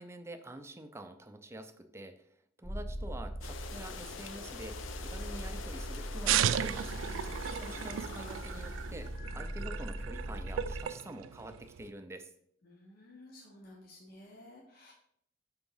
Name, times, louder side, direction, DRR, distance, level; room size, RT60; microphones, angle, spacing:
voice 1, 0.0-2.2 2.6-6.9 7.5-12.3, right 1 dB, 15° right, 8 dB, 0.4 m, -47 dB
sound 1, 2.6-10.8, equal, 30° left, 0.8 m, -41 dB
sound 2, 3.4-9.2, left 5 dB, 85° left, 0.6 m, -46 dB
sound 3, 6.3-11.9, right 10 dB, 85° right, 0.3 m, -35 dB
voice 2, 7.3-7.9 12.6-14.9, left 1 dB, 50° left, -2 dB, 0.9 m, -54 dB
5.7 x 3.5 x 5.5 m, 0.69 s
head